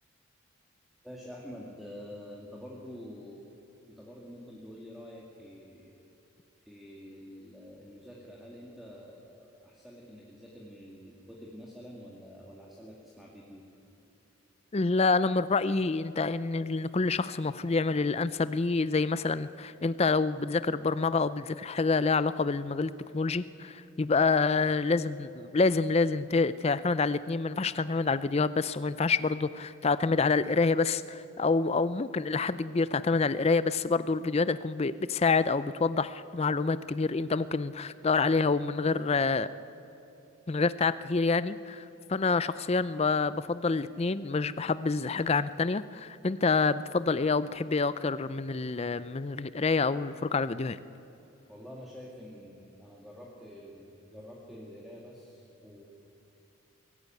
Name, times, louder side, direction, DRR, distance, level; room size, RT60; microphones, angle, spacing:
voice 1, 1.0-3.5 3.9-6.0 6.7-13.6 51.5-55.8, equal, ahead, -3 dB, 2.1 m, -47 dB
voice 2, 14.7-39.5 40.5-50.8, left 4 dB, 30° left, 15 dB, 0.4 m, -27 dB
23.0 x 17.0 x 9.3 m, 2.9 s
head